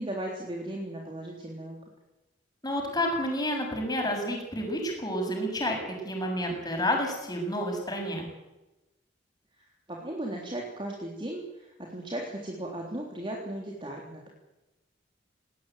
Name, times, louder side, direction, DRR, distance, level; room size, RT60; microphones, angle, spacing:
voice 1, 0.0-1.8 9.6-14.3, right 1 dB, 25° right, -1 dB, 3.6 m, -36 dB
voice 2, 2.6-5.8 6.0-8.3, left 1 dB, 20° left, 2 dB, 7.2 m, -30 dB
20.0 x 18.5 x 9.3 m, 1.0 s
head